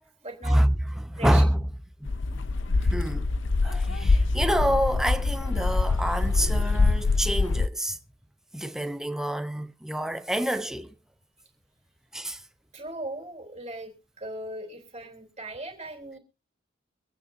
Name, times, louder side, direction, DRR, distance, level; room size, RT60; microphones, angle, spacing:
voice 1, 0.2-0.6 1.1-1.4 6.4-6.9 12.7-16.2, right 1 dB, 35° right, 3.3 m, -39 dB
voice 2, 1.0-1.6 2.0-2.4 2.8-3.2 3.6-8.0 8.5-10.9 12.1-12.4, equal, 5° right, 0.7 m, -27 dB
sound 1, 2.1-7.7, left 3 dB, 70° left, 0.7 m, -24 dB
24.5 x 9.1 x 2.7 m
head